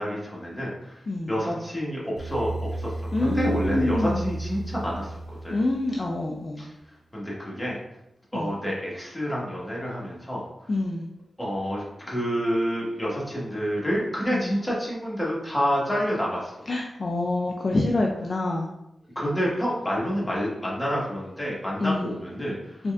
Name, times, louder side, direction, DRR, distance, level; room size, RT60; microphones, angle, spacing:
voice 1, 0.0-5.6 6.6-7.8 8.3-10.7 11.4-16.5 19.1-22.9, equal, 15° left, -5 dB, 1.4 m, -29 dB
sound 1, 2.2-6.2, right 2 dB, 80° right, 0.6 m, -33 dB
voice 2, 3.1-4.2 5.5-6.6 8.3-8.5 10.7-11.1 14.3-14.5 16.7-18.7 21.8-22.2 22.8-22.9, left 2 dB, 45° left, -1 dB, 0.4 m, -26 dB
4.0 x 3.3 x 2.4 m, 0.85 s
cardioid pair, 75°, 0 cm